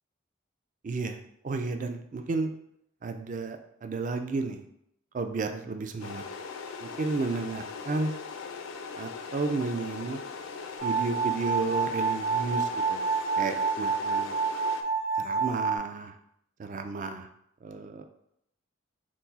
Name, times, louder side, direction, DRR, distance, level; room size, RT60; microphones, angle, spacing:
voice 1, 0.8-1.2 1.4-2.5 3.0-4.6 5.1-6.2 6.8-8.1 9.0-10.2 10.8-13.1 13.4-14.3 15.2-16.1 16.6-17.3 17.6-18.1, right 3 dB, 40° right, 7 dB, 0.3 m, -32 dB
sound 1, 6.0-14.8, left 5 dB, 70° left, 0.4 m, -40 dB
sound 2, 10.8-15.8, right 5 dB, 85° right, 0.9 m, -28 dB
4.6 x 2.0 x 3.9 m, 0.74 s
head